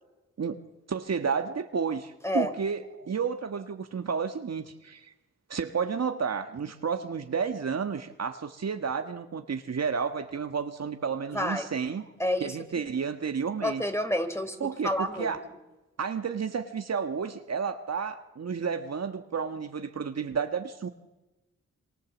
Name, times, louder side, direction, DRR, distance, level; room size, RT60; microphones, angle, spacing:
voice 1, 0.9-5.1 5.5-12.1 12.4-13.8 14.6-15.4 16.0-20.9, right 6 dB, 60° right, 7 dB, 1.6 m, -31 dB
voice 2, 11.3-11.7 12.2-12.5 13.6-14.6 14.8-15.3, left 1 dB, 10° left, 7 dB, 3.8 m, -28 dB
27.0 x 24.5 x 7.4 m, 1.1 s
supercardioid pair, 45°, 30 cm